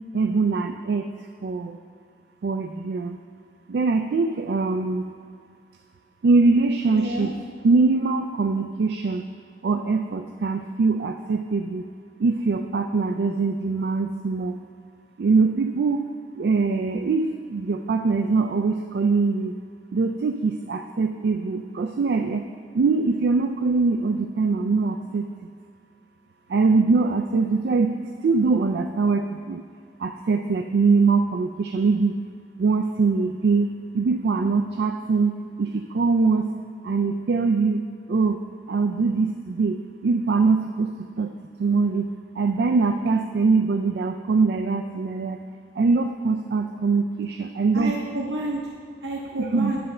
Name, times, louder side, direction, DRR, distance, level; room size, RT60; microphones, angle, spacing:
voice 1, 0.1-1.1 1.4-1.8 2.4-3.2 3.7-5.1 6.2-7.3 7.6-9.2 9.6-11.8 12.2-14.6 15.2-16.0 16.3-19.5 19.9-22.4 22.7-25.2 26.5-28.0 28.2-29.6 30.0-32.1 32.6-33.7 33.9-35.3 35.6-36.5 36.8-38.4 38.7-39.8 40.0-40.9 41.2-41.3 41.6-42.1 42.4-45.4 45.8-47.9 49.5-49.7, right 4 dB, 65° right, 7 dB, 0.4 m, -22 dB
voice 2, 6.9-7.3 47.7-48.6 49.0-49.8, right 1 dB, 85° right, -1 dB, 0.8 m, -29 dB
10.5 x 4.3 x 6.5 m, 2.1 s
head